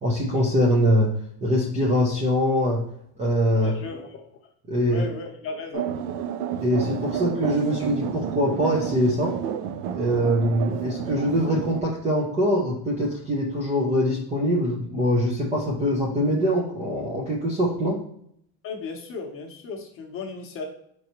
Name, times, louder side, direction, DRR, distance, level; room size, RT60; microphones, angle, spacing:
voice 1, 0.0-2.8 3.2-3.7 4.7-5.1 6.6-9.4 9.9-18.0, equal, 15° right, -3 dB, 0.4 m, -23 dB
voice 2, 3.5-4.2 4.9-5.9 18.6-20.6, left 4 dB, 30° left, 2 dB, 0.8 m, -35 dB
sound 1, 5.7-11.8, right 9 dB, 85° right, 0.6 m, -31 dB
4.5 x 3.9 x 2.9 m, 0.69 s
cardioid pair, 160°, 44 cm